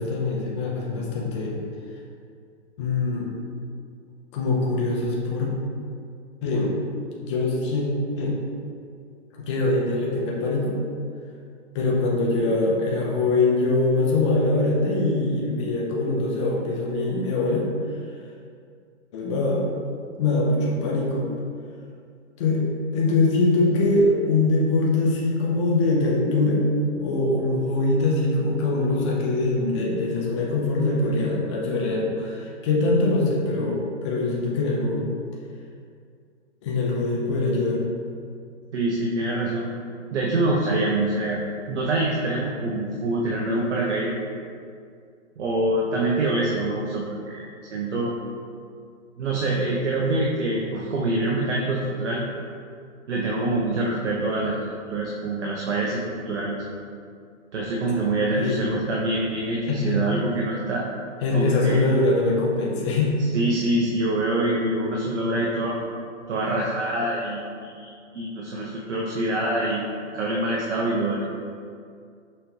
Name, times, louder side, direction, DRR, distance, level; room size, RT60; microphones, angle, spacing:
voice 1, 0.0-1.6 2.8-3.3 4.3-5.5 6.4-6.7 7.2-7.9 8.2-8.3 9.4-10.8 11.7-17.7 19.1-19.7 20.2-21.3 22.4-22.6 22.9-26.6 27.0-35.1 36.6-37.8 58.4-58.7 59.6-60.0 61.2-63.2, left 2 dB, 25° left, -3 dB, 0.5 m, -23 dB
voice 2, 38.7-39.7 40.1-41.4 41.7-44.2 45.4-47.4 47.7-48.1 49.2-52.2 53.1-54.6 54.9-56.5 57.5-60.8 61.3-61.8 63.3-65.8 66.3-71.3, right 2 dB, 70° right, -3 dB, 0.8 m, -25 dB
5.7 x 3.2 x 2.8 m, 2.3 s
hypercardioid pair, 145°, 36 cm